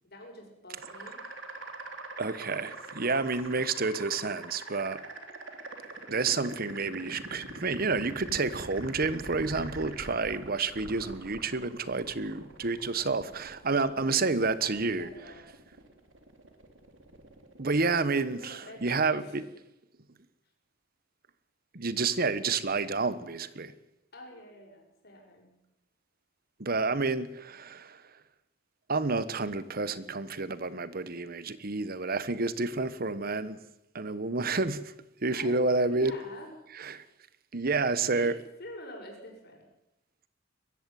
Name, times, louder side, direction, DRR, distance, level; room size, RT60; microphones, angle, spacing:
voice 1, 0.0-1.2 13.9-14.2 14.6-15.4 18.3-19.4 24.1-25.5 35.3-36.5 38.1-38.3 38.6-39.7, left 1 dB, 55° left, 7.1 m, -46 dB
sound 1, 0.8-19.5, right 2 dB, 80° right, 3.4 m, -45 dB
voice 2, 2.2-5.0 6.1-15.1 17.6-19.4 21.7-23.7 26.6-28.0 28.9-33.6 33.9-34.9 35.2-36.2 36.7-37.0 37.5-38.4, right 3 dB, 50° right, 1.3 m, -29 dB
22.5 x 14.5 x 9.4 m
head